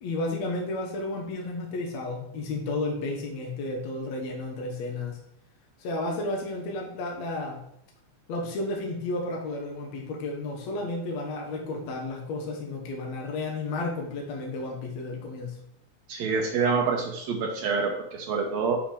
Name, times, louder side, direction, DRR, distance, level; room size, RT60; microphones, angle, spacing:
voice 1, 0.0-5.2 5.8-7.6 8.3-15.6, left 2 dB, 65° left, 0 dB, 2.3 m, -32 dB
voice 2, 16.1-18.8, right 5 dB, 75° right, 1 dB, 2.0 m, -27 dB
7.5 x 5.0 x 4.4 m, 0.78 s
omnidirectional pair, 3.4 m